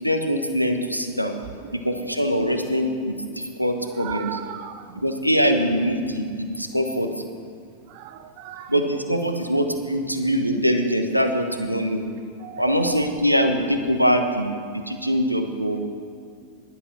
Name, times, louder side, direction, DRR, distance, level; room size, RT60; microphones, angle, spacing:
voice 1, 0.0-1.3 1.7-4.3 4.9-7.1 8.7-12.0 12.6-14.5 14.9-15.8, equal, 90° right, 6 dB, 1.0 m, -23 dB
voice 2, 3.9-5.0 7.9-8.7 12.4-13.1, right 10 dB, 45° right, 10 dB, 0.5 m, -36 dB
11.0 x 10.0 x 6.0 m, 2.2 s
figure-of-eight pair, 90°, 0 cm